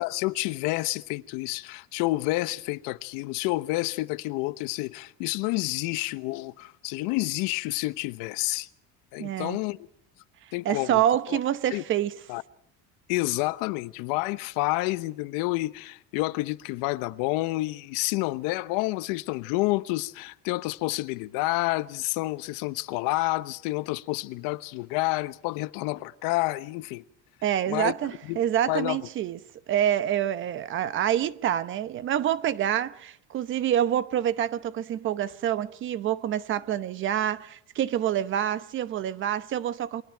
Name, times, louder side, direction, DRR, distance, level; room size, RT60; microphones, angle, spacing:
voice 1, 0.0-8.7 9.1-9.8 10.5-11.0 11.3-11.4 11.7-11.8 12.3-12.4 13.1-27.0 27.7-27.9 28.2-28.4 28.7-29.0, left 20 dB, 90° left, 1.0 m, -29 dB
voice 2, 9.2-9.6 10.6-12.1 27.4-29.4 29.7-40.0, right 10 dB, 40° right, 0.9 m, -27 dB
29.0 x 23.0 x 4.6 m
cardioid pair, 165°, 32 cm